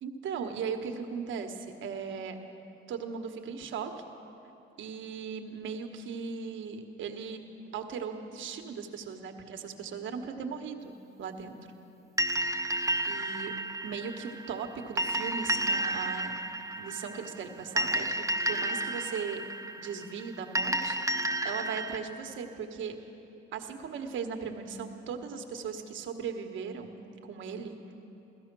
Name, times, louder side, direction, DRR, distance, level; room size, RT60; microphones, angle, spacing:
voice 1, 0.0-2.4 2.9-3.9 4.8-7.4 7.7-11.6 13.1-13.5 13.8-16.3 16.7-19.4 19.8-21.0 21.4-23.0 23.5-27.0 27.2-27.9, right 6 dB, 75° right, 5 dB, 1.3 m, -38 dB
sound 1, 12.2-22.0, right 1 dB, 15° right, 0.8 m, -32 dB
16.0 x 14.0 x 6.1 m, 2.9 s
cardioid pair, 90°, 20 cm